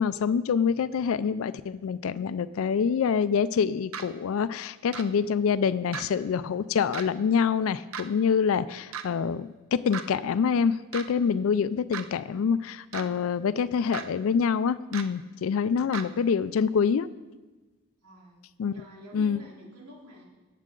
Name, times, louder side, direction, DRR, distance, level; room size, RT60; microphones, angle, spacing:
voice 1, 0.0-17.1 18.6-18.8 19.1-19.4, left 6 dB, 70° left, 15 dB, 0.3 m, -26 dB
sound 1, 3.9-4.0 4.9-5.0 5.9-6.1 6.9-7.1 7.9-8.0 8.9-9.1 9.9-10.1 10.9-11.0 11.9-12.0 12.9-13.1 13.9-14.0 14.9-15.0 15.9-16.0, right 7 dB, 70° right, 0.7 m, -35 dB
voice 2, 18.0-18.4 18.7-20.2, right 1 dB, 90° right, -3 dB, 3.4 m, -48 dB
18.5 x 7.5 x 3.8 m, 1.2 s
head